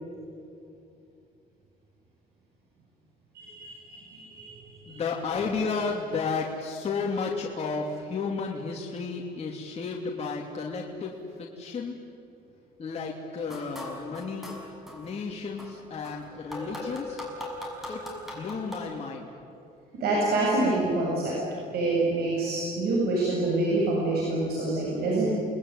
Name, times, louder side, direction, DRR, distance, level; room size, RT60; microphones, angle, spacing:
voice 1, 3.3-5.0 20.0-21.3 21.7-25.3, right 2 dB, 75° right, -4 dB, 7.6 m, -27 dB
voice 2, 4.9-11.1 11.4-12.0 12.8-14.6 14.9-17.2 17.9-19.4, left 4 dB, 40° left, -1 dB, 2.9 m, -32 dB
sound 1, 13.4-15.1 15.6-18.8, left 1 dB, ahead, 6.7 m, -39 dB
29.5 x 20.5 x 9.8 m, 2.6 s
cardioid pair, 120°, 16 cm